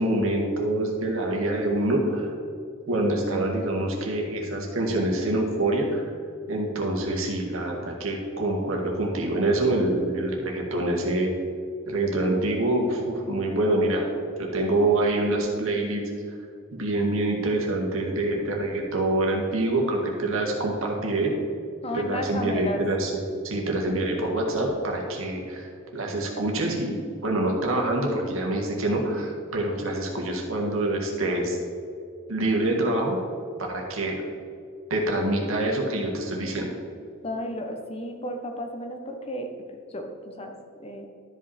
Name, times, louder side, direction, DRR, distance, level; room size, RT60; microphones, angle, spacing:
voice 1, 0.0-2.3 2.9-6.0 6.5-11.3 11.9-14.1 14.4-16.0 16.7-21.4 21.9-23.1 23.4-31.6 32.3-33.2 33.7-34.2 34.9-36.7, right 1 dB, 80° right, 0 dB, 1.9 m, -26 dB
voice 2, 21.8-22.8 37.2-39.5 39.9-41.1, left 1 dB, 30° left, 4 dB, 1.0 m, -33 dB
12.5 x 5.4 x 4.3 m, 2.3 s
head